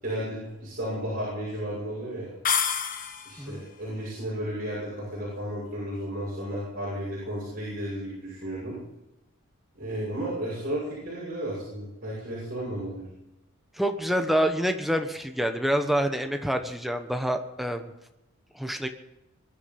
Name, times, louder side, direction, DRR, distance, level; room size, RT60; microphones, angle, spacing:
voice 1, 0.0-2.3 3.3-8.8 9.8-13.1, right 1 dB, 40° right, -7 dB, 6.7 m, -33 dB
sound 1, 2.4-3.5, left 7 dB, 40° left, 1.3 m, -28 dB
voice 2, 13.7-17.9 18.5-18.9, equal, ahead, 5 dB, 1.1 m, -27 dB
22.0 x 12.0 x 5.4 m, 0.98 s
head